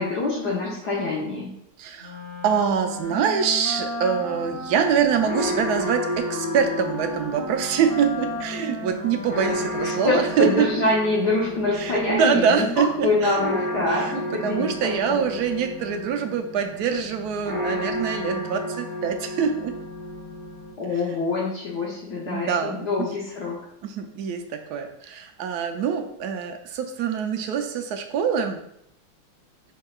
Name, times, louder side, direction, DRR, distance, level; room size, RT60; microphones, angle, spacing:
voice 1, 0.0-1.5 9.8-15.2 20.8-23.6, left 3 dB, 70° left, -4 dB, 1.3 m, -25 dB
voice 2, 1.8-2.2 2.4-10.7 11.8-13.5 13.9-19.7 22.3-22.9 23.8-28.6, right 7 dB, 70° right, 5 dB, 1.0 m, -24 dB
Wind instrument woodwind instrument, 2.0-10.5, left 2 dB, 55° right, 0.5 m, -34 dB
sound 1, 4.1-20.7, equal, 15° left, 1.4 m, -33 dB
5.6 x 3.6 x 2.3 m, 0.77 s
omnidirectional pair, 1.9 m